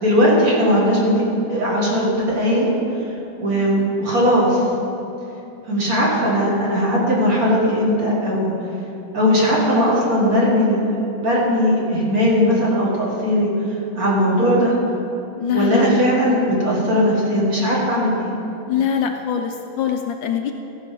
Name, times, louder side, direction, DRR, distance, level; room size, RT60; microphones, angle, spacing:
voice 1, 0.0-2.7 3.4-4.6 5.7-8.5 9.1-13.5 13.9-14.7 15.5-18.4, equal, 45° right, -4 dB, 2.3 m, -18 dB
voice 2, 15.4-15.8 18.7-20.5, left 9 dB, 75° left, 5 dB, 1.2 m, -22 dB
14.0 x 5.4 x 6.8 m, 2.9 s
omnidirectional pair, 2.3 m